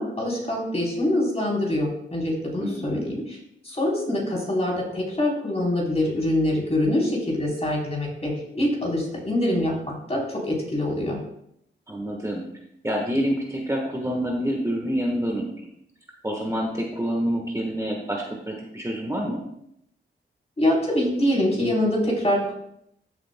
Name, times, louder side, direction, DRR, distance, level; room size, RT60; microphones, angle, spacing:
voice 1, 0.0-3.2 3.6-11.2 20.6-22.5, left 1 dB, 30° left, -3 dB, 3.6 m, -24 dB
voice 2, 2.6-3.1 11.9-12.4 12.8-15.5 16.2-19.4, equal, 15° right, -1 dB, 1.3 m, -27 dB
13.5 x 7.7 x 2.2 m, 0.76 s
wide cardioid pair, 105°, 20 cm